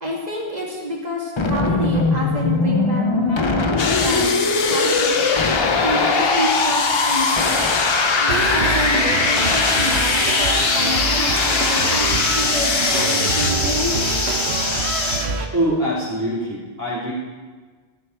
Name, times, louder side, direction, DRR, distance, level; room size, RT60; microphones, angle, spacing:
voice 1, 0.0-4.3 4.6-5.2 5.8-7.6 8.2-14.1, equal, 40° right, -3 dB, 2.5 m, -28 dB
sound 1, 1.4-15.3, left 3 dB, 30° left, 0.7 m, -22 dB
sound 2, 3.8-13.5, left 5 dB, 65° left, 1.1 m, -23 dB
sound 3, 8.3-15.5, right 4 dB, 85° right, 1.2 m, -25 dB
voice 2, 15.5-17.1, right 1 dB, 15° right, -10 dB, 2.5 m, -23 dB
13.5 x 9.8 x 4.5 m, 1.4 s
omnidirectional pair, 1.1 m